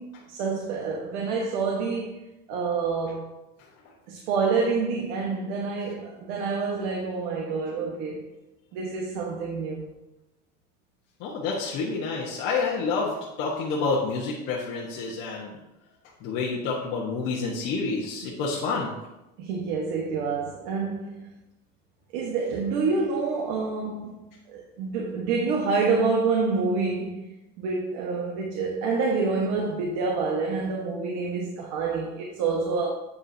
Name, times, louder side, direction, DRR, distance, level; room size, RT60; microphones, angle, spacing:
voice 1, 0.0-2.2 2.5-3.3 4.1-8.3 8.7-9.9 18.2-18.3 19.4-21.3 22.1-24.2 24.5-27.3 27.6-32.9, right 4 dB, 85° right, 1.3 m, -27 dB
voice 2, 11.2-15.6 16.2-19.0, left 4 dB, 60° left, 1.3 m, -28 dB
8.3 x 7.2 x 2.8 m
cardioid pair, 165°, 21 cm